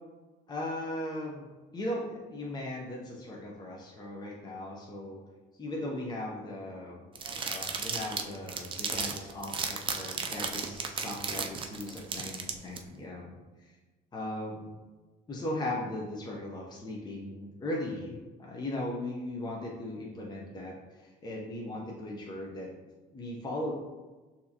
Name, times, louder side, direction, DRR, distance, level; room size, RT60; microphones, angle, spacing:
voice 1, 0.5-5.2 5.6-7.0 7.4-13.7 14.1-14.7 15.3-22.7 23.1-23.7, left 1 dB, 25° left, -2 dB, 0.7 m, -38 dB
sound 1, 7.2-12.8, right 5 dB, 30° right, 0.4 m, -35 dB
6.1 x 2.8 x 2.8 m, 1.3 s
cardioid pair, 110°, 17 cm